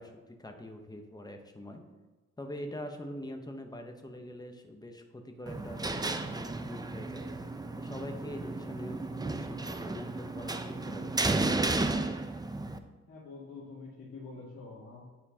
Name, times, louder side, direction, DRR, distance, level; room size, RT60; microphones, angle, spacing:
voice 1, 0.0-1.8 2.4-6.0 6.4-7.3 7.7-11.8, left 1 dB, 15° left, 4 dB, 0.9 m, -44 dB
sound 1, 5.5-12.8, right 2 dB, 15° right, 0.4 m, -33 dB
voice 2, 13.1-15.0, left 3 dB, 85° left, -8 dB, 1.5 m, -46 dB
9.8 x 4.4 x 2.8 m, 1.2 s
cardioid pair, 85°, 30 cm